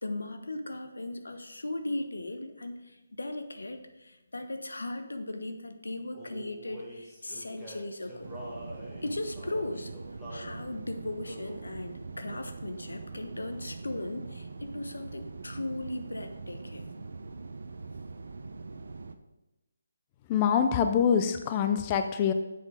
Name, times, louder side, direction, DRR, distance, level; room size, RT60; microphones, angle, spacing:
voice 1, 0.0-8.3 9.0-9.9 10.3-16.9, left 2 dB, 90° left, 7 dB, 1.1 m, -37 dB
Male singing, 6.1-10.5 11.2-11.7 12.3-12.6 12.8-13.8, equal, 5° left, 2.0 m, -46 dB
sound 1, 8.2-19.1, right 3 dB, 70° right, 0.7 m, -42 dB
voice 2, 20.3-22.3, left 7 dB, 25° left, 7 dB, 0.5 m, -25 dB
7.5 x 6.0 x 5.1 m, 0.99 s
figure-of-eight pair, 160°, 0 cm